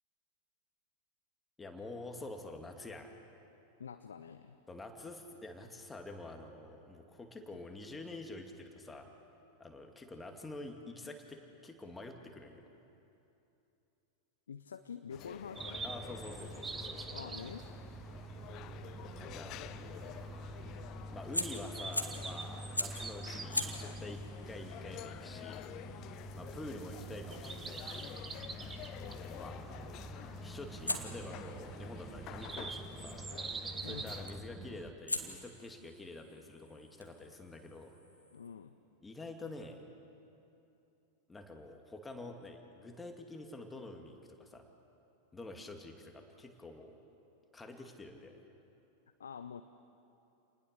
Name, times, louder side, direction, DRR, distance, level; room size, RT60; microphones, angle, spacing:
voice 1, 1.6-3.1 4.7-9.1 9.6-12.6 15.8-17.5 19.2-19.6 21.1-25.8 26.3-28.2 29.2-29.7 30.4-33.2 33.9-38.0 39.0-39.8 41.3-44.7 45.3-47.0 47.5-48.4, left 2 dB, 10° left, 4 dB, 2.4 m, -47 dB
voice 2, 3.8-4.6 14.5-15.8 17.1-17.6 33.8-34.1 38.3-38.8 49.2-49.6, left 7 dB, 70° left, 9 dB, 0.8 m, -46 dB
sound 1, 15.1-34.4, left 13 dB, 40° left, 0.7 m, -50 dB
sound 2, 15.6-34.9, right 3 dB, 15° right, 1.3 m, -45 dB
Fire, 21.3-22.3 22.7-23.1 23.5-28.4 30.8-33.0 34.3-34.6 35.1-38.5, left 1 dB, 85° left, 1.6 m, -43 dB
28.5 x 20.0 x 6.8 m, 2.8 s
figure-of-eight pair, 90°, 0 cm